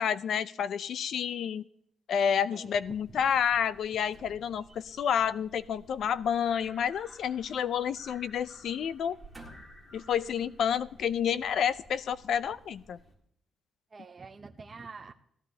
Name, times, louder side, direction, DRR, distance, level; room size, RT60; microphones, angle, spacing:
voice 1, 0.0-1.6 2.1-9.2 9.9-13.0, left 8 dB, 60° left, 16 dB, 0.4 m, -29 dB
voice 2, 2.5-3.2 13.9-15.1, right 4 dB, 25° right, 4 dB, 0.6 m, -47 dB
sound 1, 2.7-13.1, equal, 30° left, 1.9 m, -56 dB
sound 2, 4.1-5.2 6.8-7.9 8.2-8.4 9.0-9.9 10.6-10.7, right 2 dB, 10° right, 1.8 m, -53 dB
17.0 x 12.5 x 2.7 m, 0.70 s
cardioid pair, 160°, 0 cm